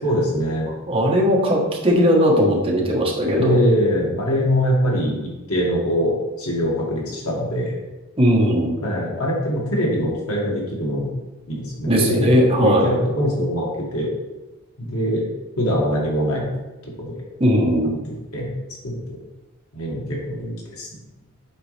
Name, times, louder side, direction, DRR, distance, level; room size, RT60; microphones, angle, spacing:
voice 1, 0.0-0.7 3.3-7.8 8.8-11.1 11.5-14.1 14.8-15.3 15.6-16.5 16.8-17.2 18.0-18.6 18.8-19.2 19.7-20.9, equal, 75° left, -3 dB, 2.0 m, -23 dB
voice 2, 0.9-3.6 8.2-8.7 11.9-12.8 17.4-18.0, equal, 25° right, -2 dB, 1.3 m, -18 dB
8.2 x 4.6 x 3.4 m, 1.1 s
head